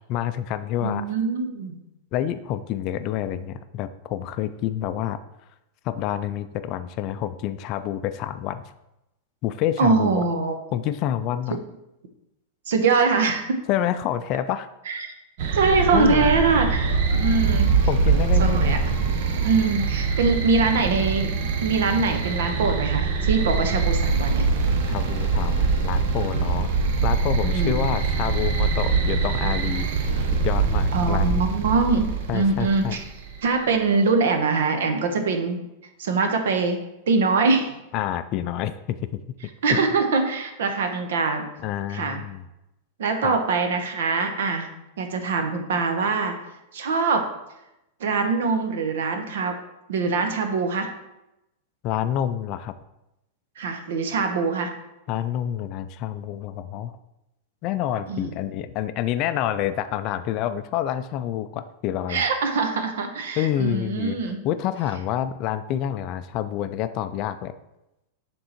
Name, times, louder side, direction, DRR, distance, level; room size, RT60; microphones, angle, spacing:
voice 1, 0.1-1.0 2.1-5.2 5.8-8.7 9.4-10.2 10.7-11.6 13.7-14.7 15.9-16.3 17.9-19.1 24.9-26.7 27.0-29.9 30.4-31.4 32.3-33.0 37.9-39.2 39.7-39.8 41.6-42.4 43.2-43.3 51.8-52.7 55.1-56.9 57.6-62.2 63.4-64.2 64.4-67.5, left 11 dB, 35° left, 11 dB, 0.3 m, -28 dB
voice 2, 0.8-1.8 9.8-10.5 12.7-13.6 14.9-15.1 15.5-17.7 18.4-18.8 19.4-21.3 21.6-24.5 27.4-27.8 30.9-33.0 33.4-35.6 36.0-36.8 37.1-37.8 39.6-41.4 41.9-42.2 43.0-44.7 45.0-46.3 46.7-47.3 48.0-49.5 49.9-50.9 53.6-54.7 58.1-58.3 62.1-64.4, right 4 dB, 80° right, 6 dB, 0.9 m, -23 dB
sound 1, 15.4-33.3, right 4 dB, 55° right, 0.7 m, -23 dB
6.8 x 3.6 x 4.4 m, 0.91 s
supercardioid pair, 165°, 0 cm